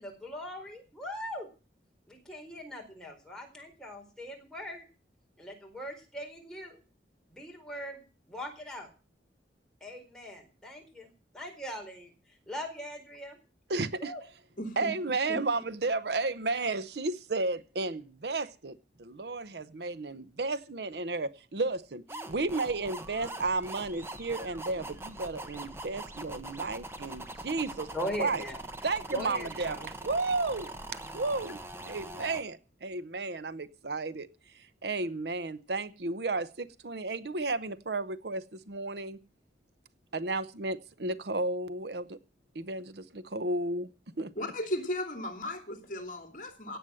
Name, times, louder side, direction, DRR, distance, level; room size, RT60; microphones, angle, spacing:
voice 1, 0.0-1.5 2.1-4.9 5.4-6.8 7.3-8.0 8.3-8.9 9.8-11.1 11.3-12.1 12.5-13.4 14.0-14.2 27.9-28.6 29.1-29.9, equal, 5° left, 1 dB, 4.4 m, -40 dB
voice 2, 13.7-14.1 14.8-27.9 28.2-28.4 28.8-31.6 31.8-34.3 34.5-39.2 40.1-42.2 42.5-43.9 44.2-44.3, right 3 dB, 65° right, 15 dB, 0.8 m, -33 dB
voice 3, 14.6-14.9 15.3-15.4 44.4-46.8, left 1 dB, 45° left, 5 dB, 3.0 m, -36 dB
sound 1, 22.1-32.4, right 2 dB, 15° right, 1.3 m, -43 dB
17.0 x 8.0 x 7.7 m, 0.35 s
head